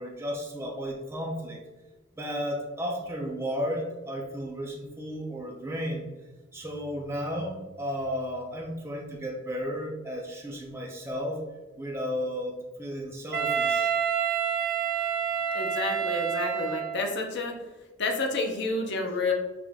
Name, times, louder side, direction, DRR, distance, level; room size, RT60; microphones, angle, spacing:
voice 1, 0.0-1.6 2.2-6.1 6.5-11.4 11.8-13.9, equal, 15° right, -1 dB, 0.6 m, -33 dB
Wind instrument woodwind instrument, 13.3-17.2, right 7 dB, 60° right, 0.8 m, -28 dB
voice 2, 15.5-17.5 18.0-19.3, left 2 dB, 60° left, 3 dB, 0.7 m, -29 dB
5.0 x 2.5 x 3.5 m, 1.1 s
head